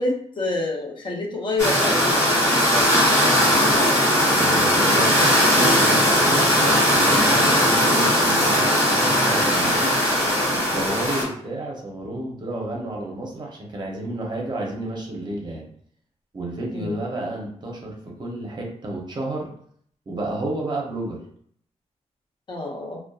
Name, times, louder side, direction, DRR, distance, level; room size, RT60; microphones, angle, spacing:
voice 1, 0.0-3.0 16.7-17.0 22.5-23.0, left 2 dB, 40° left, -2 dB, 0.6 m, -28 dB
sound 1, 1.6-11.2, equal, 25° left, 1.2 m, -18 dB
voice 2, 4.2-10.0 10.5-15.7 16.3-19.5 20.1-21.2, right 2 dB, 35° right, -1 dB, 0.6 m, -31 dB
2.6 x 2.1 x 2.2 m, 0.62 s
wide cardioid pair, 135°, 12 cm